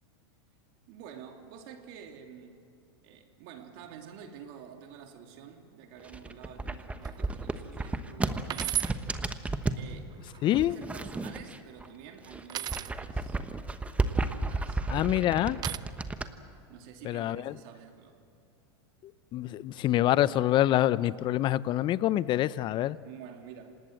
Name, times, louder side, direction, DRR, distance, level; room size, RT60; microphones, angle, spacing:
voice 1, 0.9-2.6 3.0-9.1 9.8-10.2 10.5-13.4 14.6-15.4 16.7-18.2 23.0-23.8, right 8 dB, 60° right, 4 dB, 3.0 m, -49 dB
sound 1, 6.0-9.9 10.6-11.9 12.2-16.3, right 3 dB, 10° right, 1.1 m, -33 dB
sound 2, 7.0-7.3 7.8-7.9 8.5-9.0 10.1-10.8 12.5-12.9 14.4-14.9 15.6-15.8, right 12 dB, 30° right, 0.6 m, -34 dB
voice 2, 10.4-10.8 14.9-15.6 17.0-17.5 19.0-23.0, left 13 dB, 35° left, 18 dB, 0.6 m, -26 dB
27.0 x 19.0 x 7.7 m, 2.4 s
hypercardioid pair, 115°, 14 cm